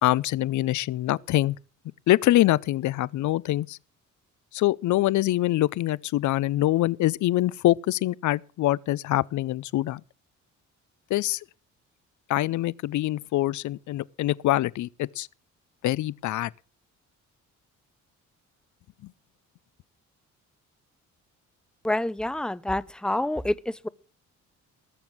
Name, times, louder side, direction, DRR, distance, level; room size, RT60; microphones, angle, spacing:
voice 1, 0.0-1.6 2.1-3.8 4.5-10.0 11.1-11.4 12.3-15.3 15.8-16.5 19.0-19.1, left 15 dB, 75° left, 0.6 m, -24 dB
voice 2, 21.8-23.5, left 1 dB, 5° left, 0.5 m, -27 dB
19.5 x 7.0 x 6.1 m
cardioid pair, 90°, 30 cm